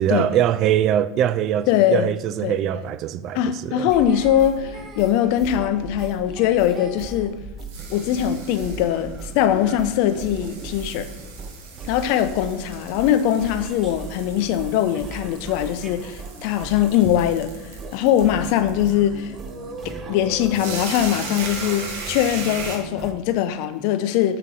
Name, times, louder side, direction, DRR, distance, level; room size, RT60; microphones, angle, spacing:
voice 1, 0.0-3.9, right 10 dB, 50° right, 0.3 m, -22 dB
voice 2, 1.7-2.1 2.4-2.5 3.3-7.4 7.9-11.1 11.8-17.5 17.9-19.3 19.8-24.4, left 11 dB, 60° left, 0.5 m, -21 dB
sound 1, 3.9-23.1, right 3 dB, 35° right, 0.8 m, -37 dB
sound 2, 7.0-22.8, right 4 dB, 65° right, 1.0 m, -38 dB
7.0 x 2.9 x 4.9 m
hypercardioid pair, 85°, 0 cm